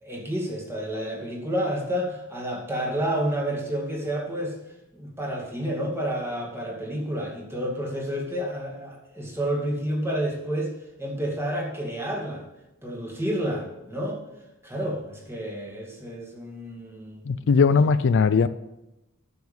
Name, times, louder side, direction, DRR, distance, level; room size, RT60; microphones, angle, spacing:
voice 1, 0.0-4.6 4.9-10.7 11.0-12.4 12.8-14.2 14.6-17.4, right 1 dB, 10° right, -1 dB, 2.3 m, -30 dB
voice 2, 17.3-18.5, left 5 dB, 60° left, 13 dB, 0.4 m, -19 dB
9.4 x 7.1 x 7.1 m, 0.97 s
head